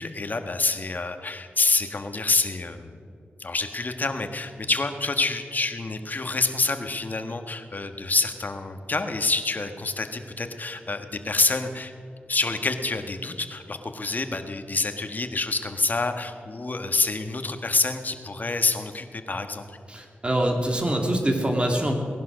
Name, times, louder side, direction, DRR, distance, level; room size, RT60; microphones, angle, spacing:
voice 1, 0.0-2.9 3.4-11.9 12.3-19.8, left 3 dB, 45° left, 7 dB, 1.4 m, -27 dB
voice 2, 19.9-21.9, right 1 dB, 25° right, 2 dB, 2.6 m, -24 dB
18.5 x 11.0 x 6.4 m, 2.4 s
cardioid pair, 55°, 4 cm